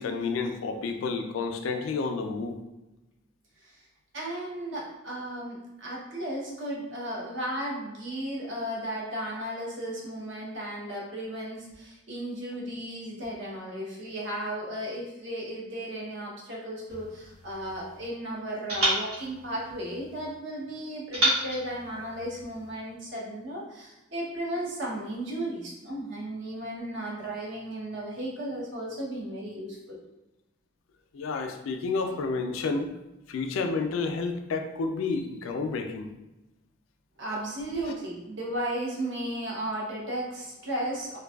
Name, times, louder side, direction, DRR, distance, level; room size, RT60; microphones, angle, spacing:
voice 1, 0.0-2.6 31.1-32.9 33.3-36.1, left 4 dB, 80° left, 5 dB, 0.3 m, -30 dB
voice 2, 4.1-30.0 37.2-41.2, right 1 dB, 65° right, -4 dB, 0.7 m, -35 dB
sound 1, 16.9-18.1 18.7-20.3 21.1-22.7, right 1 dB, 90° right, 1.1 m, -31 dB
2.6 x 2.2 x 2.2 m, 0.98 s
head